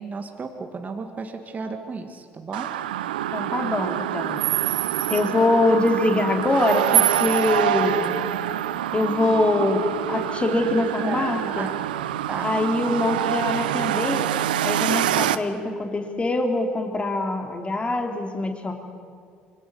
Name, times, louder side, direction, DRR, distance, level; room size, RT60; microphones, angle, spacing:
voice 1, 0.0-2.7 11.1-11.7 12.3-12.6, right 4 dB, 35° right, 4 dB, 2.2 m, -34 dB
sound 1, 2.5-15.4, right 12 dB, 80° right, 0.7 m, -25 dB
voice 2, 3.3-4.4 5.1-8.1 8.9-11.7 12.4-14.2 14.6-18.7, left 2 dB, 25° left, 4 dB, 3.1 m, -23 dB
26.0 x 24.0 x 7.1 m, 2.2 s
hypercardioid pair, 55°, 5 cm